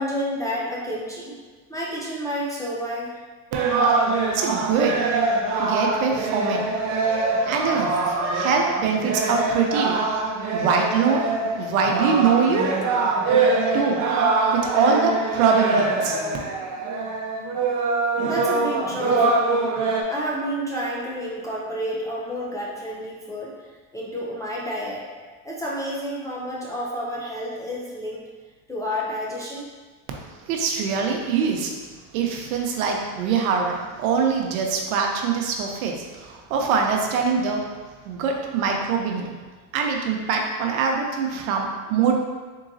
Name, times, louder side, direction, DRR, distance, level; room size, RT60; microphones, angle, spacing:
voice 1, 0.0-1.3 1.7-3.1 17.8-19.7 20.1-23.5 23.9-25.1 25.4-28.2 28.7-29.7, equal, 10° left, -6 dB, 0.3 m, -30 dB
sound 1, 3.5-20.0, right 3 dB, 45° right, 0.7 m, -23 dB
voice 2, 3.6-11.2 11.5-13.1 13.6-14.0 14.5-16.2 30.4-31.8 32.1-37.7 38.0-39.3 39.7-42.3, right 5 dB, 80° right, 1 dB, 0.8 m, -24 dB
3.9 x 3.7 x 2.6 m, 1.4 s
supercardioid pair, 130°, 41 cm